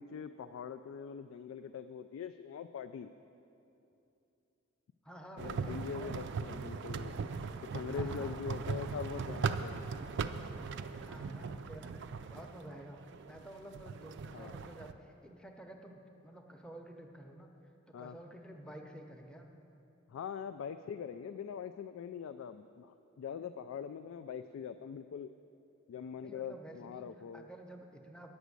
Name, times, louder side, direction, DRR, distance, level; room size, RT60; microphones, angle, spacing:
voice 1, 0.0-3.1 5.4-7.1 7.7-9.8 14.3-14.5 17.9-18.2 20.1-25.3 25.9-27.5, left 7 dB, 80° left, 9 dB, 0.3 m, -43 dB
voice 2, 5.0-6.1 7.9-8.4 11.0-12.0 12.3-13.0 13.3-17.5 17.9-19.5 26.2-27.0 27.3-28.3, right 1 dB, 5° left, 2 dB, 0.7 m, -51 dB
sound 1, 5.4-14.9, right 5 dB, 60° right, 0.4 m, -39 dB
9.1 x 6.2 x 8.2 m, 2.8 s
head